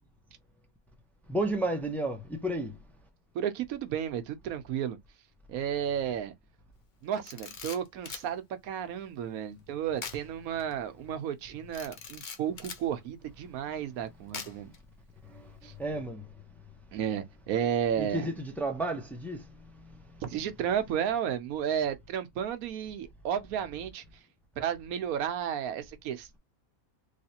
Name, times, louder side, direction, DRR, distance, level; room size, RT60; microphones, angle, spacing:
voice 1, 1.3-2.8 15.2-16.3 18.0-20.0, right 1 dB, ahead, 0.4 m, -33 dB
voice 2, 3.3-5.0 5.5-6.3 7.0-14.7 15.6-15.7 16.9-18.3 20.2-24.2 24.6-26.4, right 9 dB, 80° right, 1.1 m, -33 dB
Camera, 7.1-8.3 10.0-10.2 10.6-10.7 11.7-12.8 14.3-14.8, left 5 dB, 45° left, 0.6 m, -41 dB
3.2 x 3.1 x 2.8 m
omnidirectional pair, 1.5 m